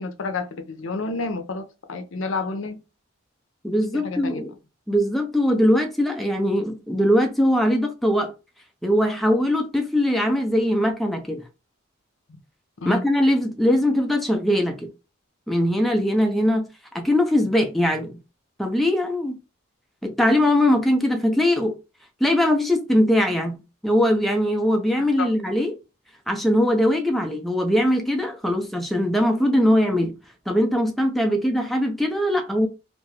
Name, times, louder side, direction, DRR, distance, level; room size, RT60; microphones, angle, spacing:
voice 1, 0.0-2.8 3.9-4.4 12.8-13.0 25.2-25.3, left 3 dB, 75° left, 0.6 m, -29 dB
voice 2, 3.6-4.5 4.9-8.3 8.8-11.5 12.8-14.9 15.5-16.7 16.9-18.2 18.6-19.4 20.0-21.8 22.2-25.7 26.3-30.2 30.5-32.7, equal, ahead, 0.4 m, -21 dB
2.6 x 2.4 x 3.1 m
head